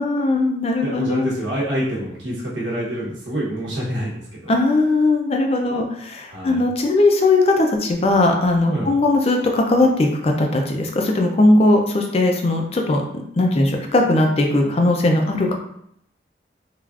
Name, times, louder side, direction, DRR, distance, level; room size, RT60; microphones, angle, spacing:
voice 1, 0.0-1.4 4.5-13.0 13.4-15.5, left 2 dB, 35° left, 2 dB, 0.4 m, -18 dB
voice 2, 0.8-4.5 6.3-6.6 8.7-9.0, equal, 85° right, -6 dB, 0.9 m, -26 dB
3.3 x 2.4 x 2.4 m, 0.71 s
head